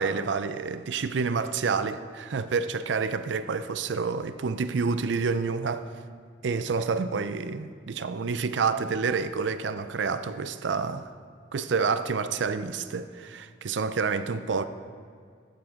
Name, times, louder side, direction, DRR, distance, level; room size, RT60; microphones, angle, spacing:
voice 1, 0.0-5.9 6.4-11.1 11.5-14.6, right 5 dB, 80° right, 0.5 m, -28 dB
13.5 x 9.5 x 3.7 m
head